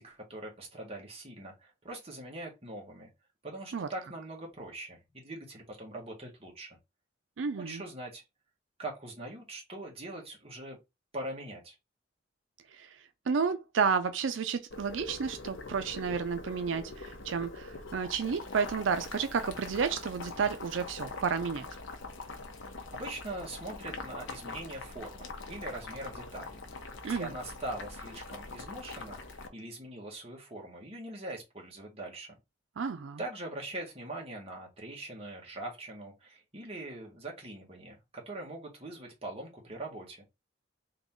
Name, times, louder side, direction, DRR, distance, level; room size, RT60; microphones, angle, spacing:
voice 1, 0.0-3.1 3.4-6.8 7.6-8.2 8.8-10.8 11.1-11.7 22.9-26.6 27.0-32.4 33.2-40.2, right 2 dB, 30° right, 1.6 m, -42 dB
voice 2, 7.4-7.8 12.7-13.0 13.3-21.7 27.0-27.3 32.8-33.2, right 5 dB, 90° right, 0.4 m, -31 dB
Boiling, 14.7-29.5, left 3 dB, 85° left, 0.9 m, -43 dB
3.8 x 2.9 x 3.7 m
head